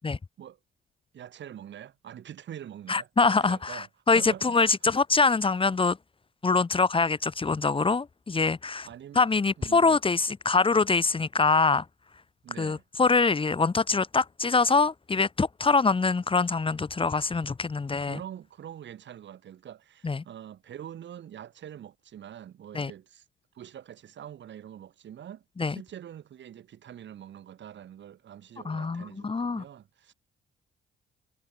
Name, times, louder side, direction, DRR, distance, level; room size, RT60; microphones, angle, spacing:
voice 1, 1.1-3.9 4.1-4.9 8.8-9.2 9.6-10.0 12.4-12.8 18.0-23.2 23.5-30.1, right 10 dB, 65° right, 6.5 m, -44 dB
voice 2, 2.9-6.0 6.4-8.9 9.2-11.9 12.6-18.2 20.0-20.2 22.7-22.9 25.6-25.8 28.7-29.6, left 4 dB, 25° left, 1.8 m, -24 dB
cardioid pair, 90°, 20 cm